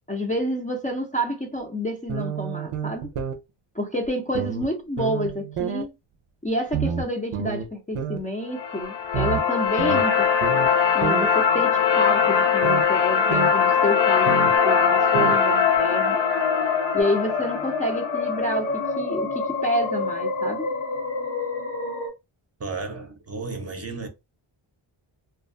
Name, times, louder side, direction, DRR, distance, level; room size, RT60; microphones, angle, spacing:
voice 1, 0.1-3.1 3.7-5.9 6.4-10.6 10.9-16.2 16.9-20.7, equal, 15° left, 0.5 m, -29 dB
sound 1, 2.1-3.4 4.0-4.1 4.3-4.7 5.0-5.9 6.7-7.7 8.0-8.2 9.1-10.7 11.0-11.3 12.6-12.9 13.3-13.5 14.3-14.6 15.1-15.4 15.7-15.8 17.0-17.1, right 8 dB, 90° right, 0.6 m, -29 dB
sound 2, 8.5-18.6, left 6 dB, 60° left, 0.6 m, -21 dB
sound 3, 14.6-22.1, left 4 dB, 90° left, 1.0 m, -27 dB
voice 2, 22.6-24.1, right 4 dB, 30° right, 0.7 m, -33 dB
2.4 x 2.2 x 2.5 m
cardioid pair, 65°, 50 cm